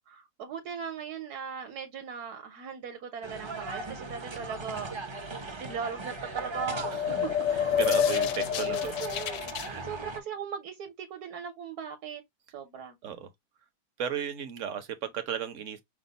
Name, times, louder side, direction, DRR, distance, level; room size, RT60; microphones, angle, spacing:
voice 1, 0.1-4.9 5.5-7.0 8.0-8.2 8.5-9.4 9.8-12.2 12.5-13.0, right 7 dB, 75° right, 1.4 m, -39 dB
sound 1, 3.2-10.2, right 3 dB, 40° right, 0.4 m, -39 dB
sound 2, 6.4-9.7, left 8 dB, 70° left, 0.8 m, -28 dB
voice 2, 7.8-8.9 9.6-9.8 13.0-13.3 14.0-15.8, right 8 dB, 55° right, 1.0 m, -34 dB
6.0 x 2.1 x 3.9 m
omnidirectional pair, 1.7 m